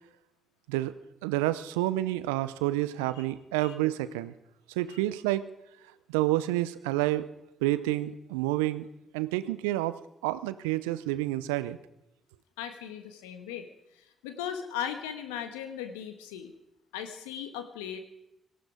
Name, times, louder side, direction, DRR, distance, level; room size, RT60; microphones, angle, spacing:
voice 1, 1.2-4.3 4.8-5.5 6.1-7.3 7.6-8.9 9.1-11.8, right 16 dB, 80° right, 15 dB, 0.6 m, -29 dB
voice 2, 12.6-16.5 16.9-18.0, left 9 dB, 80° left, 9 dB, 1.3 m, -38 dB
18.5 x 15.5 x 5.0 m, 0.85 s
hypercardioid pair, 40°, 0 cm